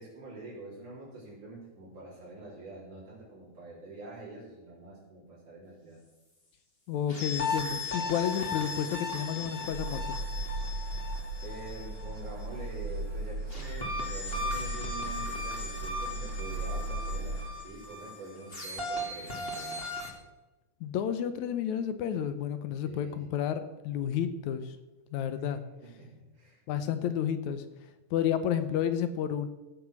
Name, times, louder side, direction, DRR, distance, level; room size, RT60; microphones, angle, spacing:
voice 1, 0.0-6.0 10.8-11.0 11.4-19.9 22.8-23.2 25.4-25.5 25.8-26.6, right 2 dB, 75° right, -7 dB, 5.1 m, -46 dB
voice 2, 6.9-10.0 20.8-24.8 25.1-25.6 26.7-27.6 28.1-29.5, left 9 dB, 75° left, 11 dB, 2.1 m, -31 dB
sound 1, 7.1-12.7 13.5-20.1, left 3 dB, 20° left, 2.2 m, -37 dB
sound 2, 9.7-17.5, right 2 dB, 45° right, 3.3 m, -37 dB
16.5 x 7.2 x 6.2 m, 1.1 s
omnidirectional pair, 3.6 m